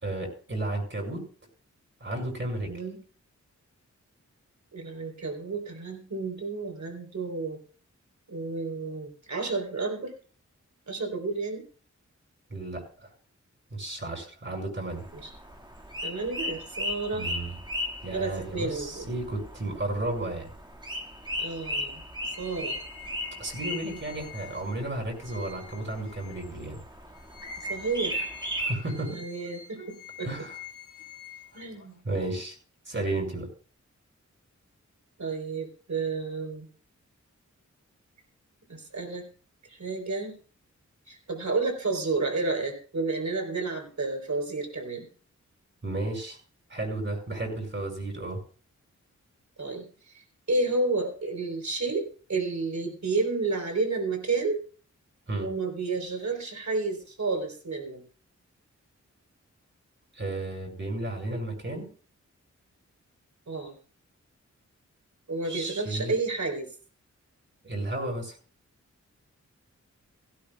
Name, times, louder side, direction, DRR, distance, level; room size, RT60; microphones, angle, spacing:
voice 1, 0.0-1.2 2.0-2.7 12.5-13.1 13.7-15.1 17.1-17.6 18.0-20.5 23.4-26.8 28.6-29.2 29.8-29.9 30.2-30.6 31.5-31.6 32.0-32.6 32.9-33.5 45.8-46.4 46.7-48.4 55.3-55.5 60.1-61.9 65.4-66.2 67.6-68.4, right 2 dB, 40° right, 1 dB, 5.9 m, -33 dB
voice 2, 2.7-3.0 4.7-7.6 8.3-10.1 10.9-11.6 15.1-15.3 16.0-17.3 18.1-19.1 21.4-22.0 22.4-22.8 27.7-28.3 29.1-30.3 31.5-32.0 35.2-36.7 38.7-39.2 39.7-40.4 41.1-45.1 49.6-54.6 55.4-58.0 63.5-63.7 65.3-66.7, right 3 dB, 70° right, 4 dB, 3.7 m, -31 dB
sound 1, 14.9-28.7, equal, 15° right, 2.0 m, -37 dB
sound 2, 22.3-26.7 27.1-32.0, left 8 dB, 80° left, 2.6 m, -47 dB
17.0 x 16.5 x 2.3 m, 0.39 s
wide cardioid pair, 105°, 30 cm